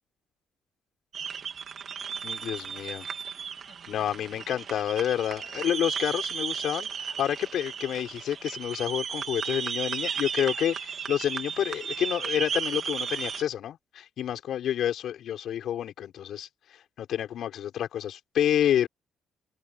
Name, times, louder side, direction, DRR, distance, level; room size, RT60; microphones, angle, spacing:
sound 1, 1.1-13.4, right 7 dB, 55° right, 2.8 m, -34 dB
voice 1, 2.2-3.1 3.9-16.5 17.0-18.9, left 10 dB, 70° left, 6.3 m, -29 dB
cardioid pair, 90°, 0 cm